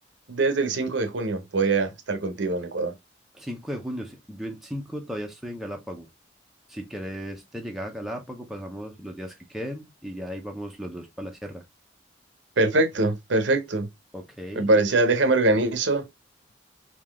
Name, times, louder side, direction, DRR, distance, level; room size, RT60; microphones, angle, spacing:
voice 1, 0.3-2.9 12.6-13.9 14.5-16.1, right 2 dB, 70° right, 0.8 m, -23 dB
voice 2, 3.3-6.1 6.7-11.6 14.1-14.7, equal, ahead, 0.6 m, -36 dB
3.8 x 2.8 x 3.3 m
head